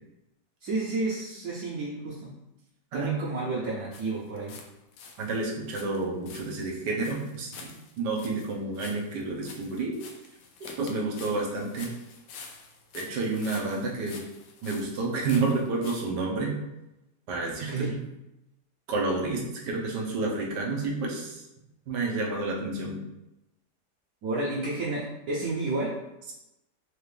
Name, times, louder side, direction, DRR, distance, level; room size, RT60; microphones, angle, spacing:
voice 1, 0.6-2.3 2.9-4.6 17.7-17.9 24.2-26.0, right 2 dB, 65° right, -6 dB, 1.1 m, -31 dB
sound 1, 3.9-4.7 4.9-16.0, left 5 dB, 85° left, 1.3 m, -47 dB
voice 2, 5.2-7.7 8.0-10.0 10.6-11.9 12.9-14.2 14.6-16.5 17.3-18.0 18.9-21.4 21.9-23.0, right 3 dB, 85° right, -2 dB, 1.5 m, -30 dB
4.6 x 2.5 x 3.2 m, 0.93 s
omnidirectional pair, 1.8 m